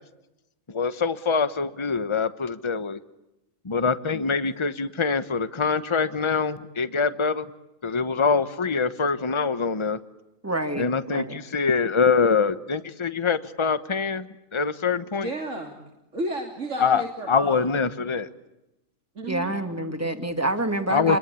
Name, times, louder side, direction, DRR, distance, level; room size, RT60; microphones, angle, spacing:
voice 1, 0.7-3.0 3.6-7.5 7.8-10.0 10.7-15.3 16.8-18.3 20.9-21.2, left 5 dB, 25° left, 13 dB, 1.1 m, -24 dB
voice 2, 10.4-11.3 19.3-21.2, right 1 dB, 10° right, 7 dB, 2.4 m, -27 dB
voice 3, 15.2-15.8 16.1-17.7 19.2-19.9, right 1 dB, 70° right, 2 dB, 3.5 m, -33 dB
29.0 x 22.5 x 8.5 m, 0.93 s
omnidirectional pair, 1.3 m